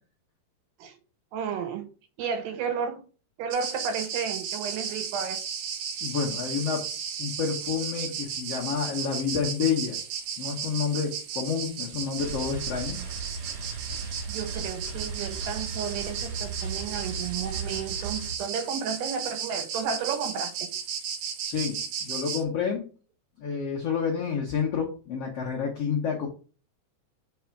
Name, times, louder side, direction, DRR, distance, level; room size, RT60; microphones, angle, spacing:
voice 1, 1.3-1.9 2.2-3.0 3.4-5.4 13.9-20.7, right 6 dB, 90° right, 3.1 m, -32 dB
sound 1, 3.5-22.4, right 7 dB, 70° right, 2.5 m, -35 dB
voice 2, 6.0-6.8 7.2-10.0 10.4-13.0 21.4-22.8 23.4-26.3, left 6 dB, 90° left, 1.3 m, -29 dB
sound 2, 12.2-18.4, right 4 dB, 50° right, 2.4 m, -36 dB
5.0 x 4.7 x 4.5 m
omnidirectional pair, 4.6 m